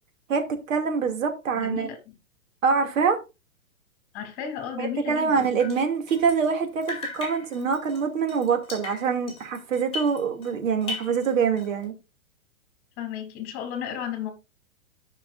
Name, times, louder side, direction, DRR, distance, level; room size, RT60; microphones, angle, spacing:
voice 1, 0.3-1.9 2.6-3.2 4.8-11.9, right 6 dB, 70° right, 2.5 m, -25 dB
voice 2, 1.6-2.1 4.1-5.4 13.0-14.3, left 9 dB, 30° left, 3.0 m, -33 dB
Drip, 5.4-6.6 6.8-10.5 10.8-11.8, left 3 dB, 15° left, 5.2 m, -38 dB
14.5 x 5.8 x 2.5 m
hypercardioid pair, 150°, 41 cm